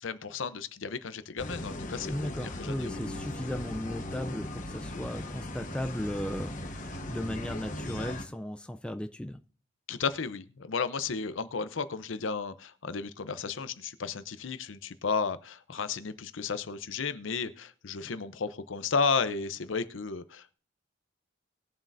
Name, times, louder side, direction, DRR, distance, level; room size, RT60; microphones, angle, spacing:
voice 1, 0.0-3.0 9.9-20.6, left 5 dB, 75° left, 13 dB, 0.7 m, -33 dB
sound 1, 1.4-8.2, left 1 dB, 40° left, 1.1 m, -38 dB
voice 2, 2.1-9.4, left 1 dB, 5° left, 8 dB, 0.4 m, -36 dB
20.0 x 7.3 x 2.6 m, 0.42 s
head